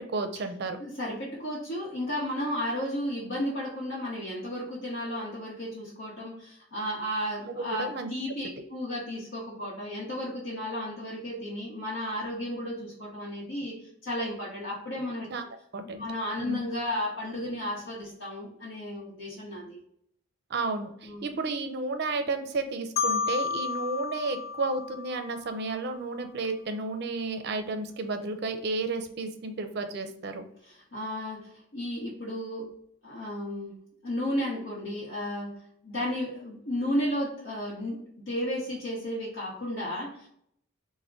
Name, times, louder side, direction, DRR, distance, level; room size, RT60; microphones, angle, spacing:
voice 1, 0.1-0.8 7.4-8.1 15.3-15.4 15.7-16.1 16.5-16.6 20.5-30.4, right 3 dB, 50° right, 8 dB, 0.5 m, -32 dB
voice 2, 0.8-13.7 14.0-15.3 15.8-19.8 21.0-21.3 30.6-32.7 33.0-33.7 34.0-35.5 35.8-40.3, equal, 65° left, -6 dB, 1.0 m, -33 dB
Marimba xylophone, 23.0-25.8, left 5 dB, 45° left, 0.4 m, -32 dB
3.6 x 2.1 x 3.6 m, 0.70 s
head